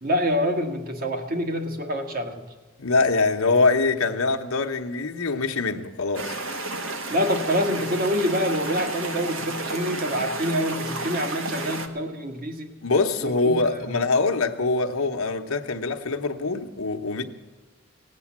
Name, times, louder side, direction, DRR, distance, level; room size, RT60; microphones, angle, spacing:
voice 1, 0.0-2.4 7.1-12.7 13.2-13.8, equal, 45° right, 5 dB, 1.6 m, -26 dB
voice 2, 2.8-6.4 12.8-17.2, left 3 dB, 80° left, 5 dB, 0.9 m, -24 dB
sound 1, 6.1-11.9, right 2 dB, 65° right, 1.4 m, -32 dB
17.5 x 8.4 x 7.2 m, 1.3 s
head